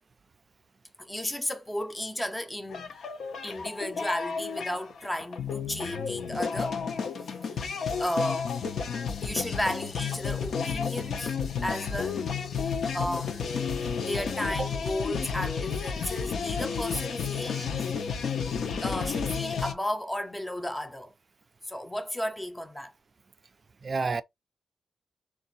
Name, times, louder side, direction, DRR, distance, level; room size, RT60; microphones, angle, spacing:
voice 1, 1.0-3.0 3.4-6.8 7.2-7.7 8.0-8.5 9.2-11.4 11.6-12.2 12.6-13.5 13.8-17.6 18.8-21.1 21.7-22.9, left 1 dB, 10° left, 0.6 m, -34 dB
sound 1, 2.7-19.7, left 6 dB, 65° left, 0.6 m, -32 dB
voice 2, 23.8-24.2, right 4 dB, 35° right, 0.3 m, -30 dB
3.9 x 2.4 x 4.0 m
wide cardioid pair, 135°, 0 cm